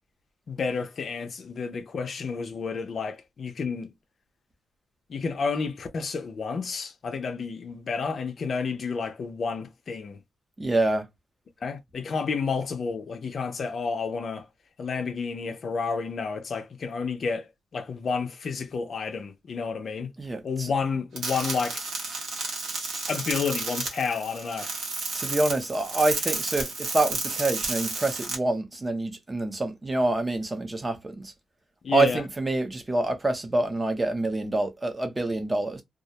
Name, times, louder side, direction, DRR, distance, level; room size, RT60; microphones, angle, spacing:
voice 1, 0.5-3.9 5.1-10.2 11.6-14.5 14.8-20.1 20.4-21.8 23.1-24.7 31.8-32.2, left 5 dB, 50° left, 0.5 m, -30 dB
voice 2, 10.6-11.1 20.2-20.7 25.1-31.3 31.9-35.8, right 2 dB, 20° right, 0.6 m, -26 dB
sound 1, 21.2-28.3, right 3 dB, 80° right, 1.1 m, -32 dB
2.3 x 2.1 x 2.8 m
wide cardioid pair, 135°, 0 cm